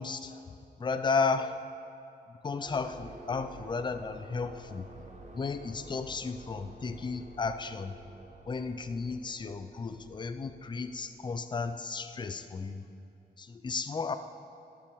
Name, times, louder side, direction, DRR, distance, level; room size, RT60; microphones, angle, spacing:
voice 1, 0.0-1.6 2.3-4.9 5.3-7.9 8.5-12.8 13.4-14.2, left 4 dB, 30° left, 10 dB, 0.4 m, -34 dB
sound 1, 2.7-12.1, right 2 dB, 45° right, 1.0 m, -51 dB
13.0 x 6.8 x 5.0 m, 2.7 s
wide cardioid pair, 170°, 17 cm